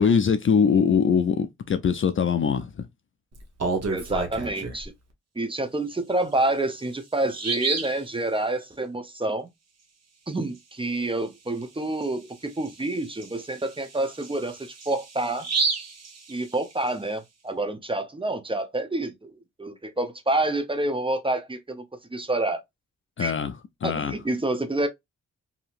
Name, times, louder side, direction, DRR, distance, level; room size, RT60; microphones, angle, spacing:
voice 1, 0.0-2.9 23.2-23.5 23.8-24.2, left 6 dB, 40° left, 0.4 m, -22 dB
Bird vocalization bird call bird song, 3.4-4.8 6.3-6.4 6.8-6.9 7.3-8.0 11.5-11.6 12.0-12.1 12.7-16.9, right 4 dB, 55° right, 1.0 m, -30 dB
voice 2, 3.9-4.9 5.4-9.5 10.3-15.5 16.3-21.8 22.1-22.6 23.2-23.3 23.8-24.9, right 2 dB, 15° right, 0.7 m, -28 dB
2.8 x 2.7 x 2.4 m
cardioid pair, 55°, 31 cm